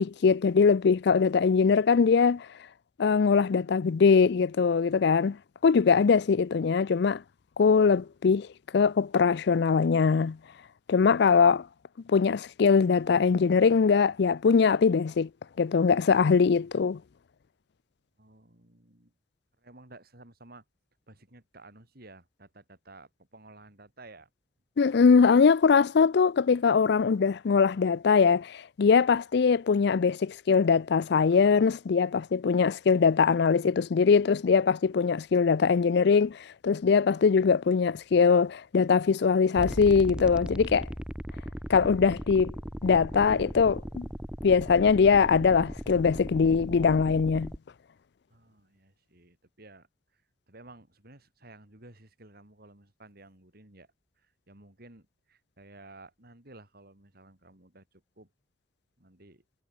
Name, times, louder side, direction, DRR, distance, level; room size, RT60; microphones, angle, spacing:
voice 1, 0.0-2.5 3.0-5.4 5.6-7.2 7.6-8.5 8.7-10.4 10.9-11.7 12.1-15.3 15.6-17.0 24.8-40.9 41.7-42.6 42.8-44.1 44.4-47.5, left 5 dB, 65° left, 0.4 m, -22 dB
voice 2, 18.2-19.1 19.6-20.6 21.1-24.3 48.3-49.9 50.1-50.2 50.5-53.9 54.2-58.3 59.0-59.4, right 2 dB, 55° right, 4.7 m, -53 dB
sound 1, 39.6-47.6, equal, 5° right, 2.0 m, -38 dB
head